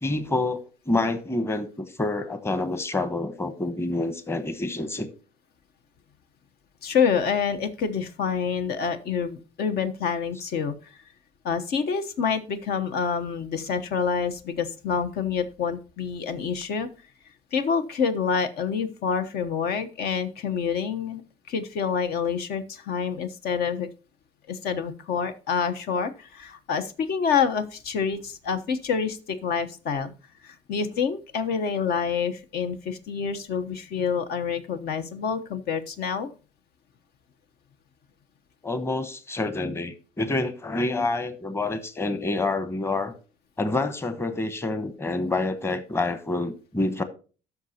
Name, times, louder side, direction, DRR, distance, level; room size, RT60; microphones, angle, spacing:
voice 1, 0.0-5.1 38.6-43.1 43.6-47.0, left 2 dB, 15° left, 1.0 m, -27 dB
voice 2, 6.8-11.0 11.4-16.9 17.5-21.2 21.5-23.9 24.5-30.1 30.4-36.3, left 6 dB, 70° left, 1.1 m, -27 dB
13.0 x 6.0 x 2.8 m
cardioid pair, 110°, 17 cm